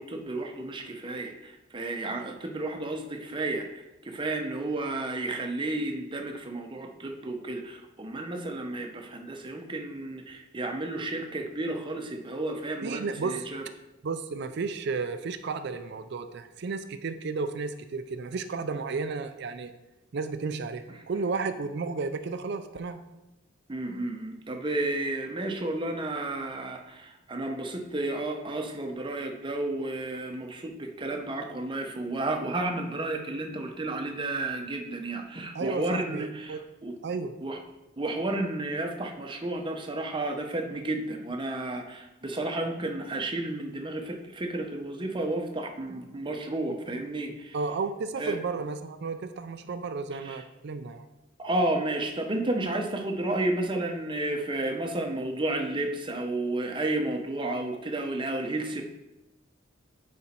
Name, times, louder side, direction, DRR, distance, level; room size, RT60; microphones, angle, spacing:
voice 1, 0.0-3.7 4.0-13.6 23.7-37.0 37.4-37.6 38.0-47.6 48.2-48.4 50.1-50.4 51.4-58.8, right 2 dB, 25° right, 4 dB, 0.8 m, -32 dB
voice 2, 12.8-13.5 14.0-19.7 20.1-23.0 35.5-36.6 37.0-37.3 47.5-51.0, right 4 dB, 60° right, 10 dB, 0.4 m, -33 dB
9.8 x 4.2 x 4.3 m, 0.99 s
head